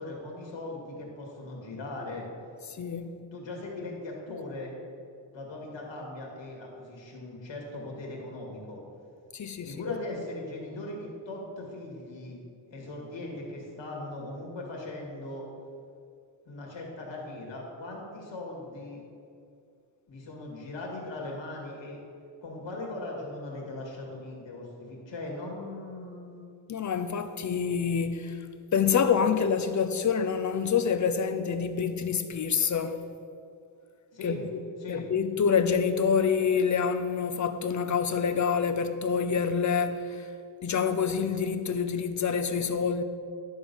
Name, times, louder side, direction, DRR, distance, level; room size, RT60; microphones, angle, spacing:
voice 1, 0.0-2.3 3.3-4.7 5.3-8.8 9.6-12.4 12.7-15.5 16.5-19.0 20.1-22.0 22.4-26.4 34.1-34.4 34.8-35.0, left 2 dB, 75° left, 2.1 m, -39 dB
voice 2, 2.7-3.1 9.3-9.9 26.7-28.4 28.7-33.0 34.2-34.6 34.9-40.3 40.6-43.0, left 6 dB, 40° left, 0.6 m, -27 dB
11.5 x 3.8 x 6.9 m
wide cardioid pair, 115°, 45 cm